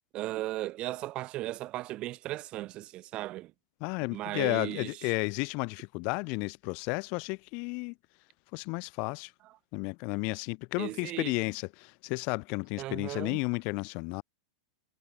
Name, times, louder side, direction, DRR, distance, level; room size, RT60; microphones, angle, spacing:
voice 1, 0.1-3.5 4.1-4.9 10.8-11.3 12.8-13.4, right 16 dB, 40° right, 2.0 m, -36 dB
voice 2, 3.8-8.0 8.5-9.3 9.7-14.2, left 32 dB, 50° left, 7.5 m, -33 dB
figure-of-eight pair, 95°, 3 cm